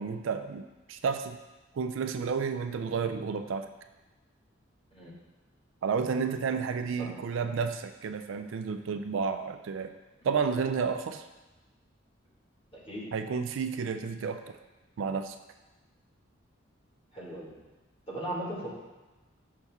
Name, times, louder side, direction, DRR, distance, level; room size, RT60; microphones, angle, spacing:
voice 1, 0.0-1.4 1.7-3.7 5.8-9.9 10.2-11.3 13.1-14.6 15.0-15.4, right 5 dB, 70° right, 8 dB, 0.4 m, -31 dB
voice 2, 12.7-13.0 17.1-17.6 18.1-18.7, right 1 dB, 25° left, -6 dB, 1.7 m, -37 dB
5.9 x 5.4 x 3.5 m, 1.1 s
head